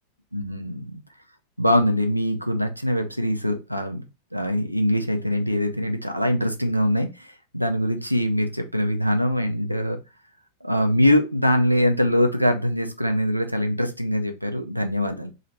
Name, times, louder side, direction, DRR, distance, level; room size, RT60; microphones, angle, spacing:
voice 1, 0.3-1.0 1.6-4.0 4.3-10.0 10.6-15.3, equal, 90° right, 5 dB, 0.6 m, -23 dB
2.9 x 2.7 x 4.2 m, 0.28 s
figure-of-eight pair, 90°, 0 cm